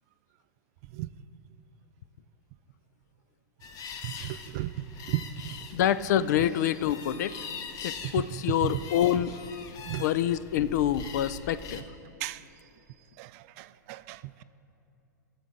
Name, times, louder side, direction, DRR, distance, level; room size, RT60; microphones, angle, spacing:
sound 1, 3.6-11.8, left 6 dB, 35° left, 0.8 m, -43 dB
voice 1, 4.0-5.7 6.4-6.5 8.0-8.8 9.8-10.1 11.7-11.8 12.2-12.5 13.2-14.4, right 15 dB, 50° right, 0.4 m, -35 dB
voice 2, 5.7-7.3 7.8-9.3 10.0-11.8, left 11 dB, 65° left, 0.4 m, -26 dB
16.5 x 7.1 x 3.8 m
hypercardioid pair, 110°, 10 cm